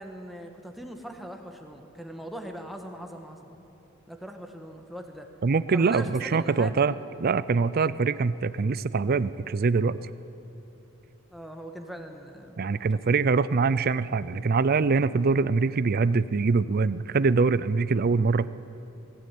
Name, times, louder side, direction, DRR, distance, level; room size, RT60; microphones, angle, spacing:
voice 1, 0.0-3.6 4.1-5.3 5.7-6.8 11.3-13.3, equal, ahead, 3 dB, 1.6 m, -41 dB
voice 2, 5.4-6.9 7.2-10.0 12.6-18.5, right 4 dB, 45° right, 16 dB, 0.4 m, -24 dB
20.0 x 16.0 x 9.3 m, 2.9 s
head